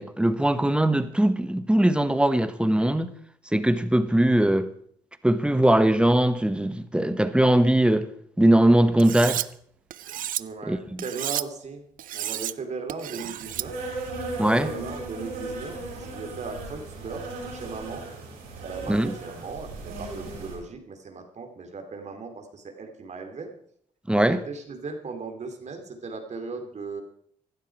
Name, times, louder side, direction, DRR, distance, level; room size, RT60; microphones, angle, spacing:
voice 1, 0.0-3.1 3.5-4.7 5.2-8.1 8.4-9.5 10.7-10.8 14.4-14.7 18.9-19.1 24.1-24.4, right 1 dB, 5° right, 1.3 m, -20 dB
Cutlery silverware, 9.0-9.5 9.9-10.4 11.0-11.4 12.0-12.5 12.9-13.7, right 13 dB, 65° right, 0.5 m, -31 dB
voice 2, 10.4-11.8 12.1-13.8 14.6-18.1 18.6-23.5 24.1-27.0, right 4 dB, 50° right, 2.9 m, -37 dB
Insect, 13.4-20.6, right 2 dB, 80° right, 7.8 m, -37 dB
16.5 x 12.0 x 4.8 m
supercardioid pair, 60°, 15 cm